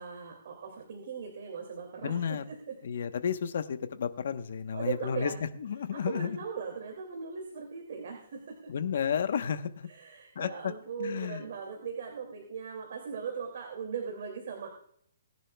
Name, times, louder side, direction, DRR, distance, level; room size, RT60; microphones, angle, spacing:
voice 1, 0.0-2.8 4.7-5.4 5.9-8.7 9.9-14.7, right 6 dB, 55° right, 1 dB, 2.6 m, -39 dB
voice 2, 2.0-2.4 2.8-5.3 5.6-6.4 8.7-9.9 10.3-10.7 11.0-11.4, left 7 dB, 60° left, 9 dB, 1.1 m, -32 dB
20.0 x 11.0 x 2.3 m, 0.66 s
hypercardioid pair, 160°, 0 cm